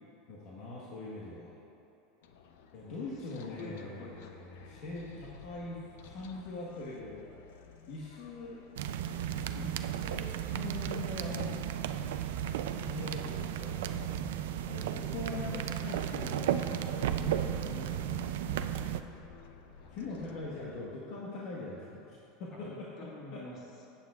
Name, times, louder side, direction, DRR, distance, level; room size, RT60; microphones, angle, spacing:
voice 1, 0.3-1.5 2.7-7.2 7.9-8.6 9.5-11.6 12.7-14.3 14.7-18.7 19.9-22.9 23.3-23.4, left 2 dB, 60° left, -5 dB, 1.3 m, -42 dB
sound 1, 2.2-20.9, left 6 dB, 85° left, 0.6 m, -55 dB
voice 2, 3.3-4.5 19.8-20.0 20.3-20.7 22.5-23.9, left 2 dB, 40° left, -4 dB, 2.0 m, -48 dB
sound 2, 8.8-19.0, right 10 dB, 90° right, 0.4 m, -34 dB
14.0 x 8.5 x 2.4 m, 3.0 s
supercardioid pair, 155°, 0 cm